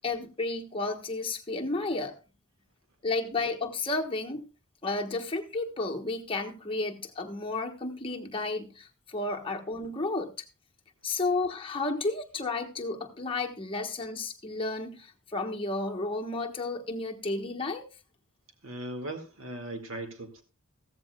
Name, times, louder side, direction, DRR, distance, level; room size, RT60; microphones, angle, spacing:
voice 1, 0.0-2.1 3.0-4.4 4.8-10.3 11.0-17.9, left 3 dB, 25° left, 1 dB, 1.3 m, -32 dB
voice 2, 18.6-20.4, right 1 dB, 65° right, 5 dB, 1.9 m, -38 dB
15.5 x 14.0 x 2.3 m, 0.31 s
head